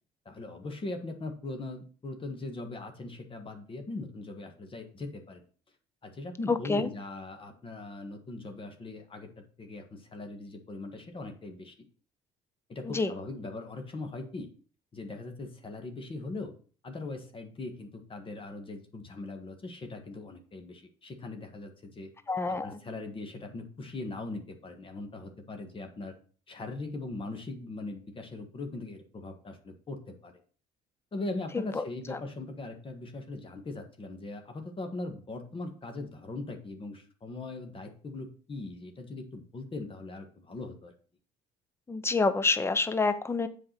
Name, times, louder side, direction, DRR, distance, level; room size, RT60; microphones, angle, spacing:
voice 1, 0.2-5.4 6.0-9.3 9.6-11.7 12.7-14.5 14.9-16.5 16.8-22.1 22.6-26.1 26.5-30.4 31.1-40.9, left 2 dB, 30° left, 5 dB, 1.6 m, -40 dB
voice 2, 6.5-6.9 12.8-13.1 22.3-22.8 31.5-32.2 41.9-43.5, left 3 dB, 15° left, 12 dB, 0.7 m, -28 dB
7.7 x 4.9 x 5.9 m, 0.41 s
cardioid pair, 110°, 17 cm